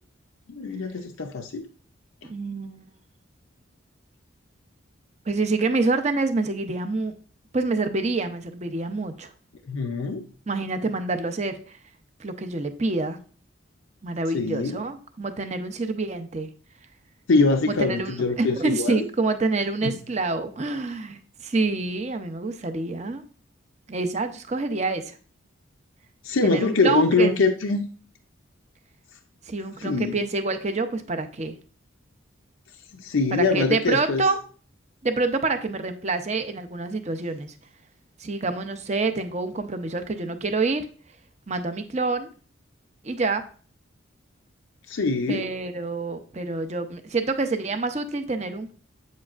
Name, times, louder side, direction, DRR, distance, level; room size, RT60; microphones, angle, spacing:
voice 1, 0.5-1.7 9.7-10.3 14.3-14.8 17.3-19.1 19.8-20.0 26.2-27.8 29.8-30.2 33.0-34.2 44.9-45.5, left 3 dB, 75° left, 4 dB, 0.6 m, -23 dB
voice 2, 2.3-2.9 5.3-7.1 7.5-9.3 10.5-11.8 12.2-13.2 14.0-16.5 17.7-23.2 23.9-25.2 26.4-27.4 29.5-31.5 33.3-34.4 35.0-37.5 38.2-40.9 41.5-42.3 43.0-43.4 45.3-48.7, right 3 dB, 35° right, 8 dB, 0.6 m, -27 dB
8.2 x 7.5 x 2.4 m, 0.41 s
head